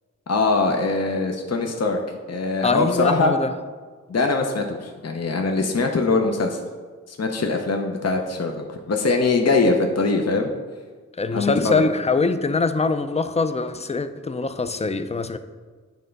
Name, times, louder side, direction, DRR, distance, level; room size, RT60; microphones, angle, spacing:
voice 1, 0.3-2.0 2.3-3.3 4.1-6.6 7.1-10.5 11.3-11.9, left 3 dB, 55° left, 3 dB, 0.7 m, -22 dB
voice 2, 2.6-3.5 11.2-15.4, left 4 dB, 20° left, 10 dB, 0.4 m, -23 dB
9.1 x 3.3 x 5.2 m, 1.5 s
wide cardioid pair, 85°, 31 cm